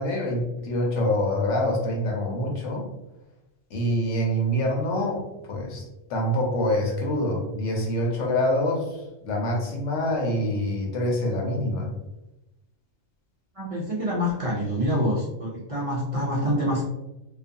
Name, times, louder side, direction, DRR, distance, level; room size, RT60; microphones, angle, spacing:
voice 1, 0.0-2.8 3.7-5.2 5.5-5.8 6.1-11.9, left 1 dB, 90° left, 0 dB, 1.1 m, -25 dB
voice 2, 13.5-16.8, equal, 45° right, -5 dB, 0.4 m, -26 dB
2.5 x 2.4 x 2.6 m, 0.94 s
omnidirectional pair, 1.2 m